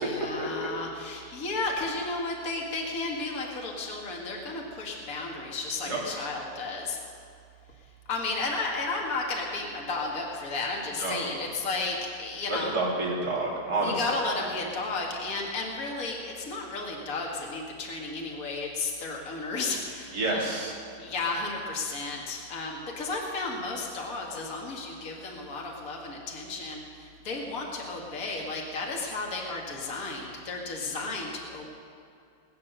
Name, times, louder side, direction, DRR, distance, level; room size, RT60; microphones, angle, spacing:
voice 1, 0.0-7.0 8.1-12.7 13.8-20.5 21.0-31.6, left 3 dB, 50° left, -1 dB, 2.3 m, -33 dB
voice 2, 11.0-11.3 12.5-14.0 20.1-20.7, right 2 dB, 55° right, -3 dB, 3.4 m, -29 dB
20.5 x 9.6 x 6.7 m, 2.5 s
omnidirectional pair, 2.0 m